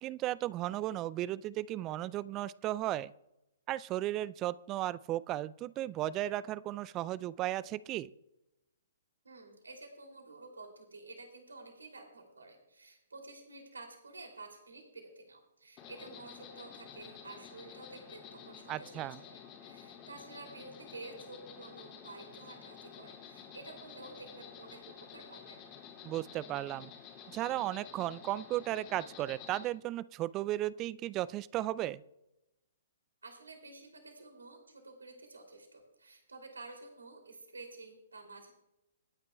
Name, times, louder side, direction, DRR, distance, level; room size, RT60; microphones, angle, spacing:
voice 1, 0.0-3.1 3.7-8.1 18.7-19.2 26.0-26.9 27.3-32.0, right 14 dB, 25° right, 19 dB, 0.3 m, -35 dB
voice 2, 9.2-25.6 33.2-38.5, right 3 dB, 80° right, 3 dB, 2.8 m, -51 dB
Insect, 15.8-29.6, left 7 dB, 30° left, 2.6 m, -51 dB
27.0 x 9.6 x 2.3 m, 0.90 s
figure-of-eight pair, 120°, 0 cm